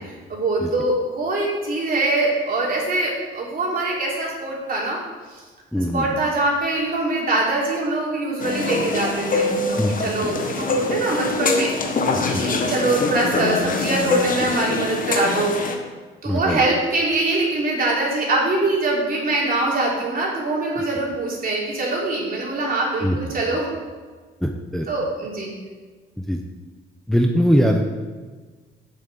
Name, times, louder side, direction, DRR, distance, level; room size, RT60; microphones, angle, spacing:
voice 1, 0.3-5.0 5.3-5.4 5.9-11.7 12.3-15.6 16.2-23.7 24.9-25.5, right 2 dB, 45° right, -4 dB, 3.4 m, -23 dB
voice 2, 5.7-6.2 9.8-9.9 12.1-12.4 16.2-16.6 23.0-23.2 24.4-24.9 26.2-26.4 27.1-27.8, equal, ahead, 2 dB, 0.8 m, -21 dB
sound 1, 8.4-15.8, left 3 dB, 45° left, 1.3 m, -24 dB
7.5 x 6.4 x 7.5 m, 1.4 s
cardioid pair, 90°, 20 cm